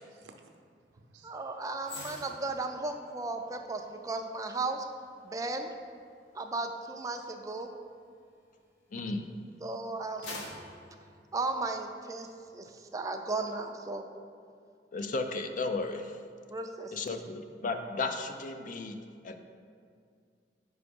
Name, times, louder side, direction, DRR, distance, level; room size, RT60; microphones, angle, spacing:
voice 1, 0.0-2.2, right 3 dB, 85° right, 4 dB, 0.6 m, -59 dB
voice 2, 1.2-4.9 5.2-5.7 6.3-7.7 9.6-10.5 11.3-12.3 12.5-14.0 16.5-17.1, right 3 dB, 20° right, 5 dB, 0.4 m, -35 dB
sound 1, 1.8-9.2 9.7-12.1 12.4-12.6, left 2 dB, 75° left, 1.0 m, -50 dB
voice 3, 8.9-9.5 14.9-16.1 16.9-19.0 19.2-19.4, left 3 dB, 50° left, 7 dB, 0.4 m, -34 dB
4.9 x 4.8 x 5.2 m, 2.2 s
head